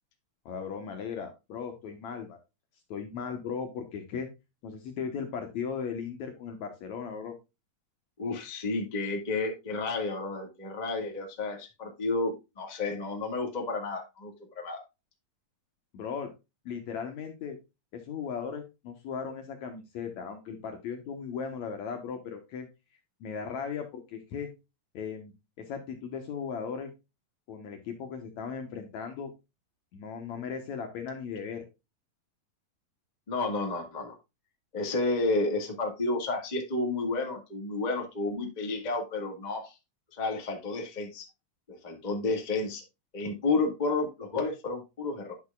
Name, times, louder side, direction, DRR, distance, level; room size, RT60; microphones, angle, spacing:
voice 1, 0.5-2.4 2.9-4.3 4.6-7.3 15.9-16.3 16.7-17.6 17.9-22.7 23.2-24.5 24.9-25.3 25.6-26.9 27.5-29.3 29.9-31.6, left 6 dB, 65° left, 5 dB, 2.0 m, -37 dB
voice 2, 8.2-14.8 33.3-34.1 34.7-39.7 40.1-41.2 41.7-42.8 43.1-45.3, left 3 dB, 20° left, 1 dB, 1.0 m, -31 dB
10.5 x 6.4 x 2.3 m, 0.24 s
omnidirectional pair, 4.1 m